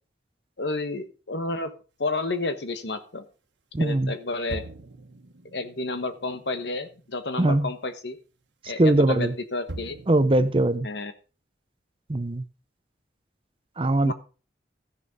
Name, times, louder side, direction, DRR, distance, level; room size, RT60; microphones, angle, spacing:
voice 1, 0.6-1.7 2.0-3.3 3.8-4.6 5.5-8.2 8.7-10.0 10.8-11.1 14.0-14.1, left 2 dB, 70° left, 9 dB, 1.3 m, -31 dB
voice 2, 3.7-4.1 7.4-7.7 8.8-9.3 10.1-10.9 12.1-12.4 13.8-14.1, right 1 dB, 30° right, 13 dB, 0.6 m, -21 dB
sound 1, 4.5-7.4 7.8-7.9 9.7-10.6, right 2 dB, 75° right, 1.4 m, -42 dB
14.0 x 6.8 x 5.1 m, 0.35 s
head